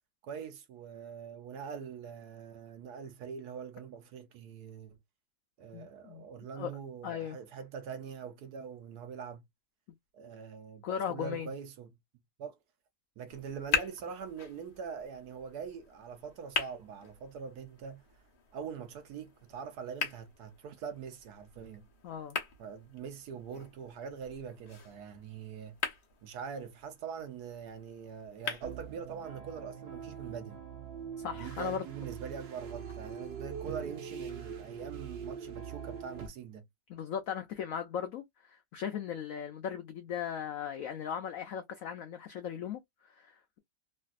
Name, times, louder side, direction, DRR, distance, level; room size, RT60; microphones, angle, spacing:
voice 1, 0.2-5.0 5.6-9.4 10.1-10.8 11.1-11.9 12.4-12.6 13.2-18.0 18.5-21.9 22.6-25.7 26.2-30.6 31.4-36.6, right 6 dB, 70° right, 1.1 m, -43 dB
voice 2, 5.7-6.2 6.6-6.7 7.0-7.4 10.8-11.5 22.0-22.4 31.2-31.9 36.9-43.6, left 8 dB, 80° left, 0.7 m, -38 dB
sound 1, 13.3-29.3, left 5 dB, 40° left, 0.8 m, -41 dB
sound 2, 28.6-36.3, right 7 dB, 55° right, 0.7 m, -43 dB
3.2 x 2.6 x 2.4 m
omnidirectional pair, 2.0 m